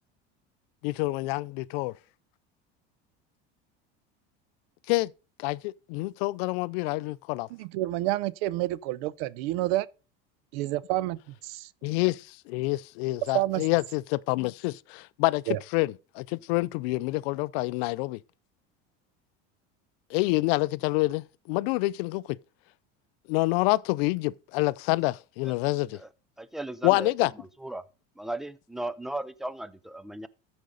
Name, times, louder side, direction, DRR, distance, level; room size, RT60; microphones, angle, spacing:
voice 1, 0.8-1.9 4.9-5.1 5.4-7.5 11.8-15.4 15.7-18.2 20.1-22.2 23.3-26.0 26.8-27.3, left 21 dB, 80° left, 0.5 m, -27 dB
voice 2, 7.5-9.9 10.5-11.7 13.3-13.6 15.5-15.6, right 16 dB, 80° right, 0.7 m, -29 dB
voice 3, 26.4-27.8 28.2-30.3, right 1 dB, ahead, 0.4 m, -37 dB
13.5 x 5.1 x 3.9 m
cardioid pair, 140°, 29 cm